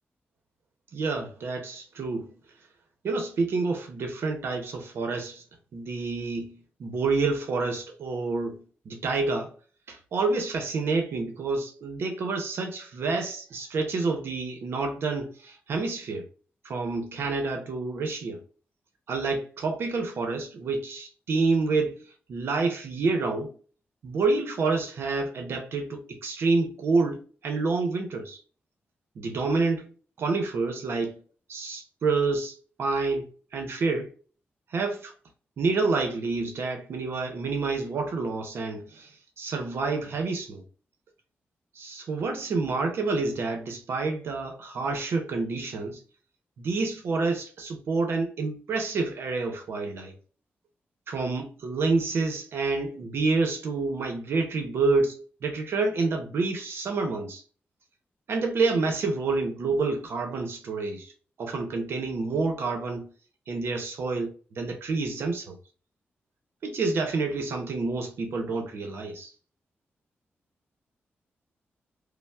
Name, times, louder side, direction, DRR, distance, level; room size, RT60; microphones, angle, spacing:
voice 1, 0.9-2.3 3.0-5.4 5.7-9.5 9.9-16.3 16.6-18.4 19.1-22.0 22.3-23.6 24.0-28.4 29.2-29.9 30.2-31.2 31.5-34.1 34.7-35.1 35.6-40.6 41.7-46.0 46.6-50.1 51.1-57.4 58.3-61.1 61.4-63.1 63.5-65.6 66.6-69.3, right 3 dB, 70° right, 0.6 m, -28 dB
5.4 x 2.0 x 2.2 m
wide cardioid pair, 155°, 4 cm